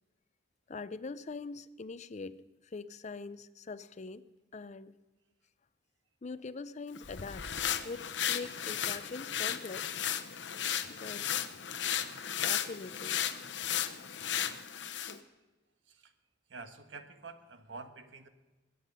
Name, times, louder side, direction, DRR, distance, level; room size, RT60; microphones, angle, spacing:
voice 1, 0.7-4.2 4.5-5.0 6.2-7.5 7.8-10.1 10.6-11.3 12.4-13.2, left 4 dB, 40° left, 15 dB, 0.5 m, -43 dB
sound 1, 6.9-15.2, left 9 dB, 70° left, 0.9 m, -35 dB
voice 2, 16.5-18.3, right 3 dB, 90° right, 9 dB, 1.3 m, -47 dB
21.5 x 9.3 x 5.5 m, 1.2 s
head